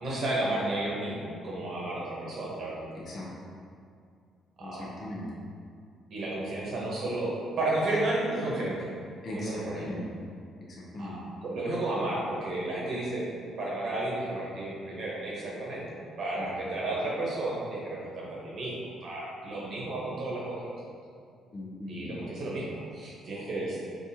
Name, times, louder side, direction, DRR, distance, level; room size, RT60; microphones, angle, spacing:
voice 1, 0.0-2.9 4.6-4.9 6.1-8.9 9.3-9.9 11.0-13.2 13.6-15.8 16.2-20.7 21.9-23.8, right 2 dB, 60° right, -5 dB, 0.9 m, -32 dB
voice 2, 2.9-3.3 4.6-5.3 9.2-10.0 10.7-11.2 16.4-16.5 21.5-22.2, left 1 dB, 45° left, -5 dB, 0.6 m, -39 dB
4.0 x 2.5 x 2.7 m, 2.3 s
cardioid pair, 100°, 0 cm